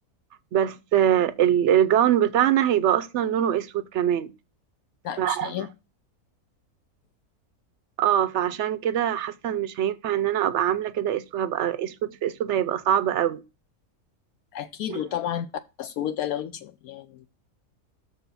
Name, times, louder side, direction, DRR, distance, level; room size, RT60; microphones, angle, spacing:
voice 1, 0.5-4.3 5.2-5.7 8.0-13.4 14.9-15.0, right 10 dB, 65° right, 0.8 m, -23 dB
voice 2, 5.0-5.7 14.5-15.5 15.8-17.3, left 10 dB, 80° left, 1.0 m, -31 dB
6.6 x 4.7 x 5.5 m
omnidirectional pair, 1.6 m